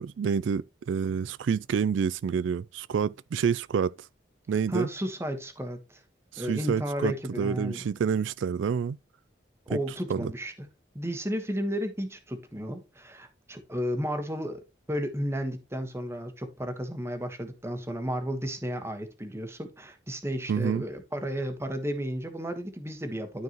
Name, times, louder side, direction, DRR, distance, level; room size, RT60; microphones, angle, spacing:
voice 1, 0.0-3.9 4.5-4.9 6.3-9.0 9.7-9.8 10.1-10.3 20.5-20.8, right 6 dB, 85° right, 0.3 m, -28 dB
voice 2, 4.7-6.0 6.4-7.8 9.7-10.5 10.9-23.4, equal, 15° right, 1.4 m, -33 dB
12.5 x 4.6 x 3.0 m
head